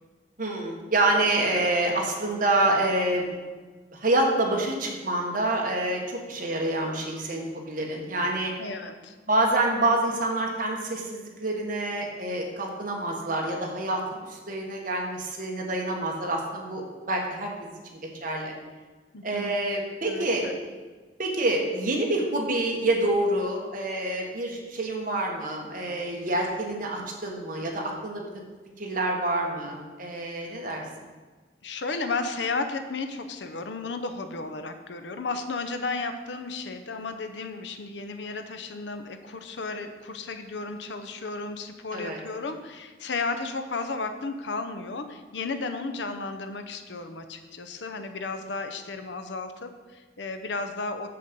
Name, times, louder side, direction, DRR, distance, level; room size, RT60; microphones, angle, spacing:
voice 1, 0.4-3.3 3.9-8.5 9.3-16.8 17.1-17.5 18.2-18.5 19.2-20.4 21.2-28.2 28.8-30.8 41.9-42.2, right 2 dB, 50° right, 0 dB, 1.5 m, -27 dB
voice 2, 8.6-9.1 19.1-19.6 20.0-20.6 31.6-51.1, left 3 dB, 75° left, 8 dB, 0.7 m, -34 dB
7.1 x 6.7 x 5.3 m, 1.3 s
head